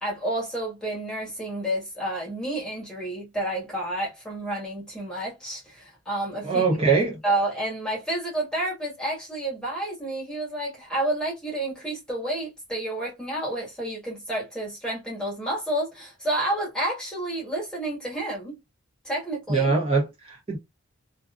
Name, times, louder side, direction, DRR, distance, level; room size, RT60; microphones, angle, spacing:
voice 1, 0.0-6.7 7.2-18.6 19.0-19.7, right 1 dB, 5° left, 1.3 m, -30 dB
voice 2, 6.4-7.2 19.5-20.6, right 4 dB, 25° right, 0.8 m, -23 dB
2.7 x 2.5 x 2.3 m
head